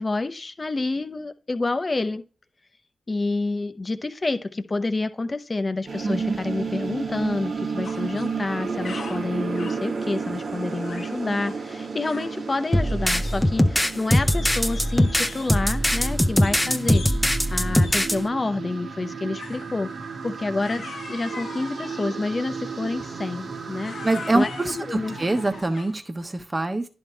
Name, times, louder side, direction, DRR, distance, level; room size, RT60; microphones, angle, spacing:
voice 1, 0.0-2.2 3.1-19.9 20.2-23.9 24.3-25.2, left 3 dB, 40° left, 10 dB, 0.8 m, -28 dB
sound 1, 5.9-25.6, right 5 dB, 70° right, 1.2 m, -33 dB
voice 2, 6.0-6.4 24.0-24.8 25.2-26.9, right 2 dB, 30° right, 6 dB, 1.2 m, -24 dB
sound 2, 7.8-8.3 8.6-9.9 10.7-11.2 11.4-11.6 12.0-12.4 12.9-13.8 14.1-15.6 16.4-16.6 16.9-17.3 17.8-18.1 19.4-19.7 20.6-22.2 23.0-23.2 23.7-26.1, left 5 dB, 80° left, 0.8 m, -41 dB
sound 3, 12.7-18.2, left 1 dB, 10° left, 0.8 m, -21 dB
10.5 x 3.6 x 4.5 m, 0.35 s
cardioid pair, 45°, 0 cm